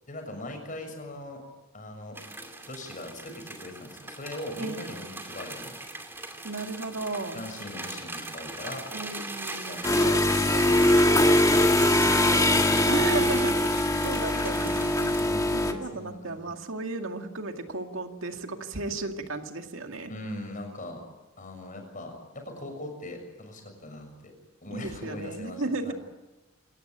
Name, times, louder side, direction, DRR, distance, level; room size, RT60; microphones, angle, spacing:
voice 1, 0.1-1.4 1.7-2.2 2.7-5.8 7.3-8.8 9.7-13.2 13.9-14.0 14.3-14.6 15.2-16.5 20.1-21.0 21.4-24.3 24.6-25.9, left 1 dB, 40° left, 4 dB, 6.7 m, -40 dB
sound 1, 2.2-15.3, right 2 dB, 10° right, 2.4 m, -40 dB
voice 2, 4.6-5.2 6.4-7.4 8.9-9.8 12.9-13.6 14.0-15.2 15.5-20.1 24.7-25.9, right 3 dB, 75° right, 5 dB, 2.2 m, -34 dB
sound 2, 9.8-15.7, left 1 dB, 15° left, 1.8 m, -22 dB
27.5 x 14.5 x 9.1 m, 1.1 s
head